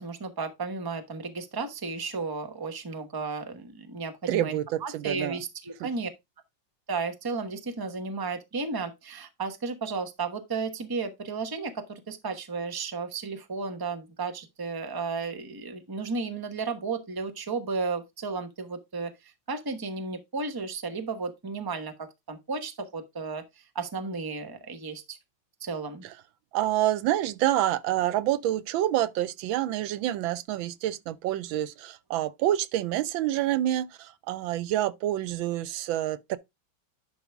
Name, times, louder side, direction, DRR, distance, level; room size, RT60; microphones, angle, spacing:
voice 1, 0.0-6.1 6.9-25.2 25.6-26.0, right 4 dB, 15° right, 0.7 m, -34 dB
voice 2, 4.3-5.4 26.5-36.4, right 13 dB, 80° right, 1.4 m, -27 dB
11.0 x 4.8 x 3.5 m
omnidirectional pair, 2.1 m